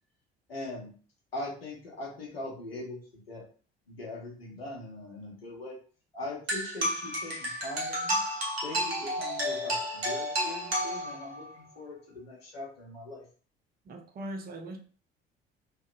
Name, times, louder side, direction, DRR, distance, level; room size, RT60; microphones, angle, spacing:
voice 1, 0.5-0.9 1.3-3.0 3.3-3.5 3.9-5.8 6.1-8.2 8.6-13.3, left 2 dB, 80° left, -2 dB, 0.8 m, -41 dB
sound 1, 6.5-11.5, equal, 85° right, 0.6 m, -31 dB
voice 2, 13.9-14.8, right 1 dB, 30° right, 4 dB, 0.6 m, -40 dB
2.7 x 2.2 x 2.4 m, 0.41 s
figure-of-eight pair, 55°, 29 cm